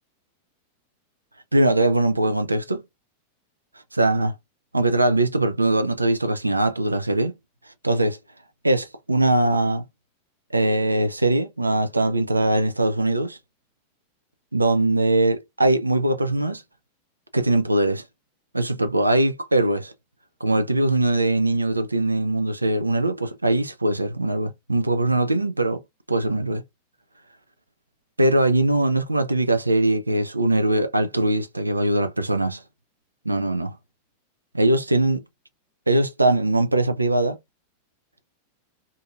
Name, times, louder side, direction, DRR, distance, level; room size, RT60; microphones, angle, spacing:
voice 1, 1.5-2.8 3.9-4.3 4.7-7.3 7.8-8.2 8.6-9.8 10.5-13.4 14.5-16.6 17.3-18.0 18.5-19.9 20.4-25.8 26.1-26.6 28.2-32.6 33.3-33.8 34.5-35.2 35.9-37.4, right 1 dB, 85° right, 0.4 m, -21 dB
2.6 x 2.6 x 2.3 m
figure-of-eight pair, 90°, 0 cm